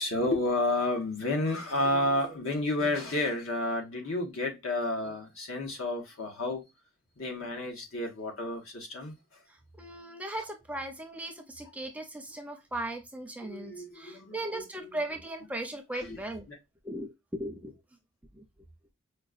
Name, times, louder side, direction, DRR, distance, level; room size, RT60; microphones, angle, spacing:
voice 1, 0.0-6.6 7.2-9.1 13.4-14.9 15.9-16.2 16.5-16.6, left 2 dB, 75° left, 1.1 m, -31 dB
voice 2, 9.8-16.5 16.8-17.7 18.3-18.4, right 1 dB, 5° right, 0.5 m, -38 dB
5.0 x 2.2 x 2.4 m
head